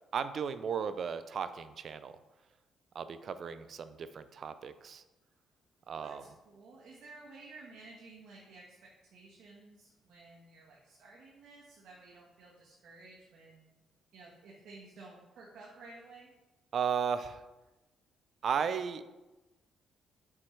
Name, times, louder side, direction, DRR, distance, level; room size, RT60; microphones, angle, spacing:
voice 1, 0.1-2.1 2.9-5.0 5.9-6.2 16.7-17.4 18.4-19.0, right 7 dB, 55° right, 12 dB, 0.4 m, -35 dB
voice 2, 5.9-8.8 9.1-13.7 14.1-16.3, right 3 dB, 70° right, -4 dB, 1.3 m, -53 dB
7.2 x 4.6 x 3.2 m, 1.1 s
cardioid pair, 90°, 0 cm